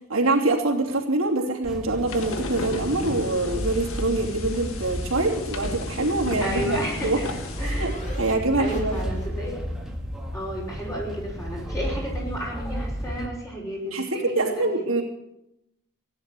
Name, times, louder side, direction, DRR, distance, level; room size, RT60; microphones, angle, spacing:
voice 1, 0.1-7.2 7.6-9.1 13.9-15.0, right 2 dB, 75° right, -1 dB, 3.0 m, -25 dB
sound 1, 1.6-13.3, equal, 5° right, 1.8 m, -33 dB
sound 2, 2.1-8.0, left 2 dB, 70° left, 1.6 m, -35 dB
voice 2, 6.4-7.3 7.6-8.0 8.6-9.6 10.3-14.1 14.4-15.0, right 1 dB, 15° left, -3 dB, 5.3 m, -32 dB
sound 3, 6.5-9.7, left 1 dB, 35° left, 3.1 m, -43 dB
16.5 x 10.5 x 7.8 m, 0.85 s
head